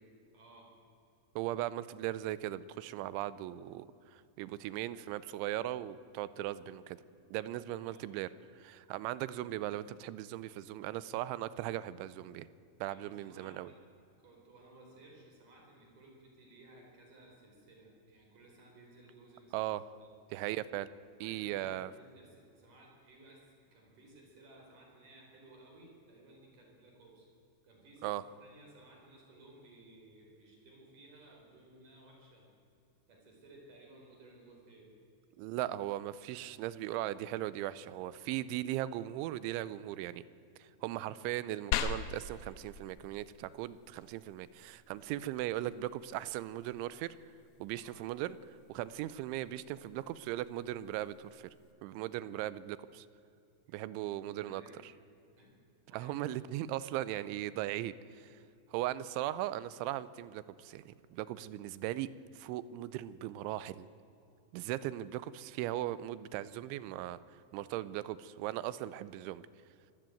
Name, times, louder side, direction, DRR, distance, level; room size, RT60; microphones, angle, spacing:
voice 1, 0.3-0.7 7.8-8.1 12.9-13.8 14.2-20.1 21.2-23.5 23.7-27.3 27.6-32.5 33.1-34.9 47.8-48.0 54.1-54.9 55.4-55.6 55.9-56.2, right 2 dB, 45° right, 0 dB, 5.8 m, -58 dB
voice 2, 1.4-7.0 7.3-8.3 8.6-12.5 12.8-13.7 19.5-19.8 20.3-20.9 21.2-21.9 28.0-28.2 35.4-40.2 40.6-47.1 47.6-48.4 48.7-51.5 51.8-53.1 53.7-54.9 55.9-58.3 58.7-62.1 62.4-63.9 64.5-67.2 67.5-69.4, right 14 dB, 85° right, 17 dB, 3.1 m, -38 dB
sound 1, 41.7-51.7, left 7 dB, 80° left, 2.9 m, -44 dB
25.0 x 14.0 x 9.1 m, 2.7 s
omnidirectional pair, 5.4 m